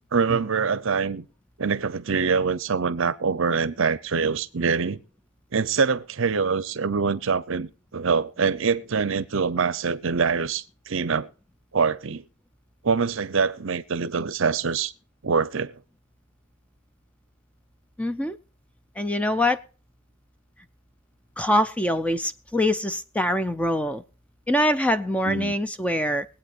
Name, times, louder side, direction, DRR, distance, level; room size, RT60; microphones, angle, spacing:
voice 1, 0.1-1.3 1.6-5.0 5.5-11.3 11.7-12.2 12.8-14.9 15.2-15.7 25.2-25.5, right 5 dB, 60° right, 0.7 m, -24 dB
voice 2, 18.0-18.4 19.0-19.6 21.4-24.0 24.5-26.3, left 1 dB, 5° left, 0.4 m, -24 dB
22.5 x 8.6 x 2.5 m
head